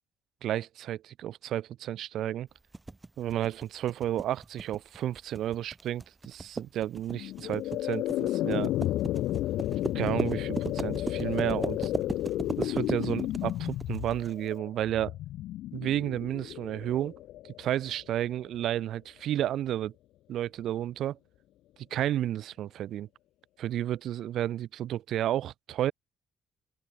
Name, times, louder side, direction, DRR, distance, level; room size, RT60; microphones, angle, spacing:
voice 1, 0.4-2.5 3.2-8.7 9.9-11.9 12.6-15.1 15.7-17.1 17.6-19.9 20.3-21.2 21.9-23.1 23.6-25.9, right 12 dB, 75° right, 5.5 m, -32 dB
sound 1, 2.7-14.3, right 2 dB, 20° right, 2.1 m, -37 dB
sound 2, 7.1-18.2, left 14 dB, 85° left, 2.4 m, -32 dB
open air
cardioid pair, 90°, 0 cm